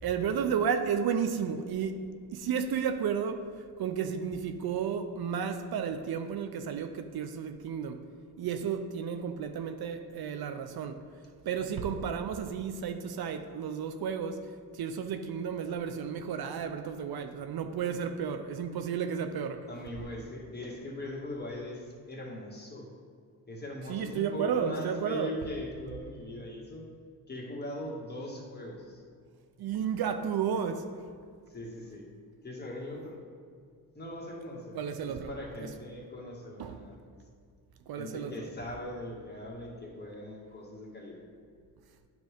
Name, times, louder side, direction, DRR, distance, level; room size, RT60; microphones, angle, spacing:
voice 1, 0.0-2.0 2.3-3.4 3.8-8.0 8.4-11.1 11.5-14.5 14.7-19.7 23.9-25.3 29.6-30.9 34.7-35.3 36.6-36.8 37.9-38.4, right 7 dB, 65° right, 0.5 m, -32 dB
voice 2, 19.7-22.9 23.5-26.9 27.3-29.0 31.5-32.1 32.4-33.2 34.0-37.0 38.0-41.2, left 1 dB, 25° left, 1.7 m, -40 dB
9.3 x 3.1 x 5.0 m
cardioid pair, 70°, 41 cm